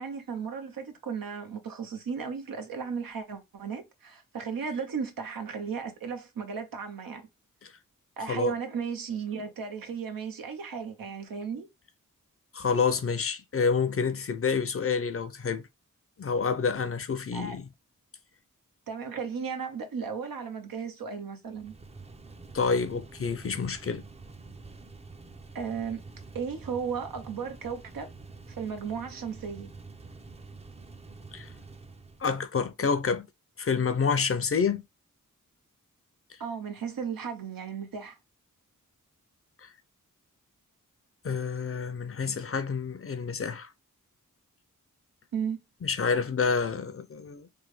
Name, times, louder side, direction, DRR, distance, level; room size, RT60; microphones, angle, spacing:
voice 1, 0.0-7.2 8.2-11.7 17.3-17.6 18.9-21.7 25.5-26.0 26.3-28.1 28.6-29.7 36.4-38.2 45.3-45.6, right 6 dB, 85° right, 0.7 m, -35 dB
voice 2, 12.5-15.6 16.2-17.7 22.5-24.0 31.3-31.5 32.2-33.3 33.6-34.8 39.6-39.7 41.2-43.7 45.8-47.5, left 5 dB, 45° left, 0.5 m, -28 dB
sound 1, 21.5-32.3, right 3 dB, 20° right, 0.5 m, -47 dB
3.3 x 2.2 x 3.1 m
cardioid pair, 55°, 33 cm